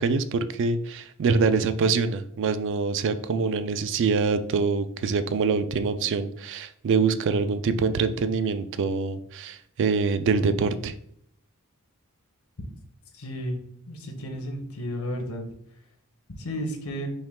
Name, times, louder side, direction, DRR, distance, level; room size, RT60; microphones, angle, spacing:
voice 1, 0.0-10.9, right 4 dB, 55° right, 12 dB, 0.3 m, -25 dB
voice 2, 13.2-13.6 13.9-15.4 16.4-17.1, equal, 80° left, 3 dB, 1.0 m, -32 dB
5.4 x 2.2 x 3.5 m, 0.69 s
head